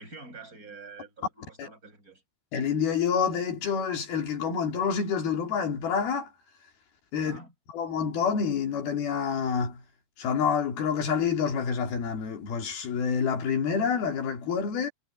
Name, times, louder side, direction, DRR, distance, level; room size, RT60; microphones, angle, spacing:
voice 1, 0.0-2.2 7.2-7.5, right 3 dB, 20° right, 7.8 m, -46 dB
voice 2, 2.5-6.3 7.1-7.4 7.7-9.8 10.2-14.9, left 6 dB, 65° left, 4.2 m, -27 dB
omnidirectional pair, 4.7 m